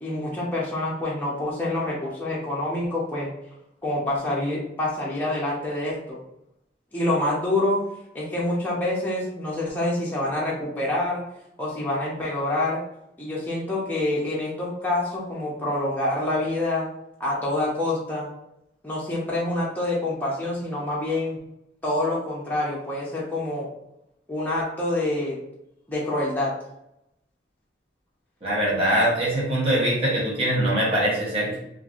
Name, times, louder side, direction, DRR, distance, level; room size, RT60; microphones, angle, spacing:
voice 1, 0.0-3.3 3.8-6.2 6.9-7.8 8.1-11.2 11.6-12.8 13.2-16.9 17.2-18.3 18.8-21.4 21.8-23.7 24.3-25.4 25.9-26.5, left 1 dB, 10° left, -6 dB, 0.6 m, -26 dB
voice 2, 28.4-31.6, right 1 dB, 35° right, -6 dB, 0.9 m, -22 dB
3.1 x 2.4 x 2.5 m, 0.83 s
head